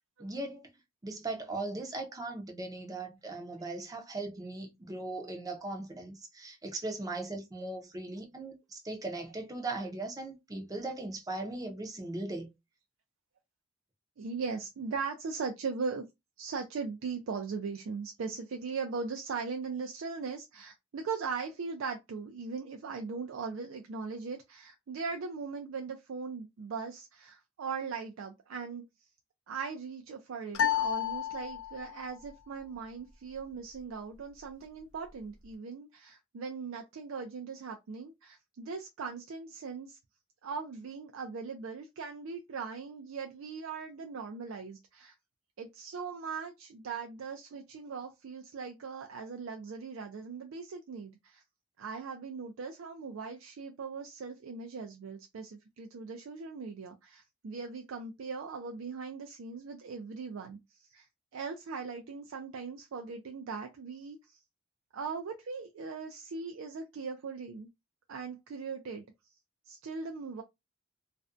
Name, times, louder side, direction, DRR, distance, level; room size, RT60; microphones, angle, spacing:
voice 1, 0.2-0.7 1.0-12.5, right 2 dB, 20° right, 0.5 m, -39 dB
voice 2, 14.2-16.1 16.4-28.8 29.5-40.0 40.4-45.1 45.6-51.4 51.8-61.1 61.3-64.4 64.9-67.7 68.1-69.0 69.7-70.4, right 5 dB, 75° right, 0.4 m, -39 dB
sound 1, 30.5-32.0, left 10 dB, 70° left, 0.5 m, -31 dB
2.5 x 2.1 x 2.4 m
head